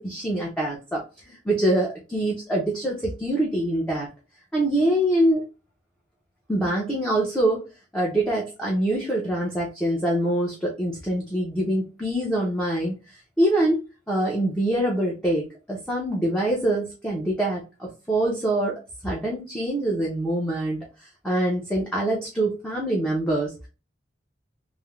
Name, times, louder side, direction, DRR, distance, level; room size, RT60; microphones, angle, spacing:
voice 1, 0.0-4.1 4.5-5.5 6.5-7.6 7.9-13.8 14.1-23.5, right 1 dB, 5° left, -4 dB, 0.6 m, -25 dB
3.3 x 2.1 x 2.3 m, 0.30 s
head